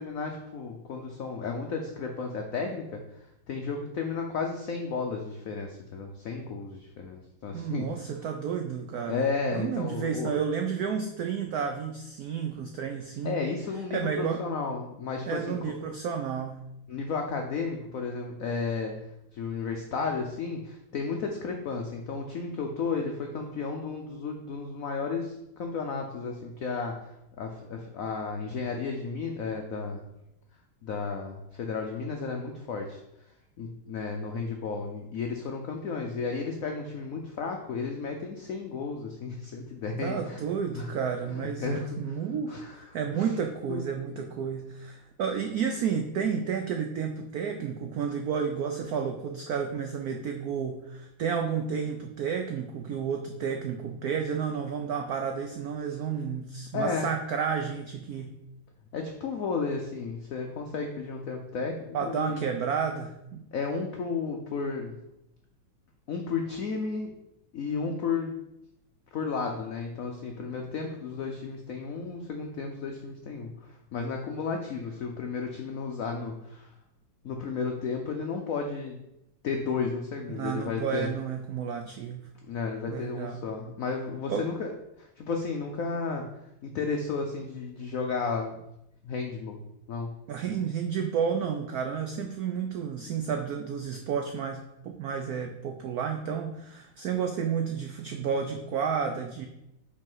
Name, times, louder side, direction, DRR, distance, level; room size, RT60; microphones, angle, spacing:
voice 1, 0.0-7.9 9.1-10.3 13.2-15.7 16.9-18.9 19.3-30.0 30.8-33.0 33.6-40.4 40.7-40.9 41.3-42.2 42.5-42.7 43.1-43.3 43.7-43.8 56.7-57.1 58.9-62.4 63.5-65.0 66.1-67.1 67.5-68.3 69.1-76.7 77.2-79.0 79.4-81.1 82.5-84.7 85.0-86.2 86.6-88.5 89.0-89.6 89.9-90.1, left 4 dB, 85° left, 3 dB, 0.7 m, -33 dB
voice 2, 7.5-9.2 9.5-13.4 13.9-14.4 15.3-16.6 40.0-58.4 61.9-63.4 80.3-82.3 82.9-83.4 84.3-84.5 90.3-99.5, right 7 dB, 85° right, 4 dB, 0.8 m, -31 dB
5.3 x 4.1 x 5.4 m, 0.85 s
omnidirectional pair, 2.2 m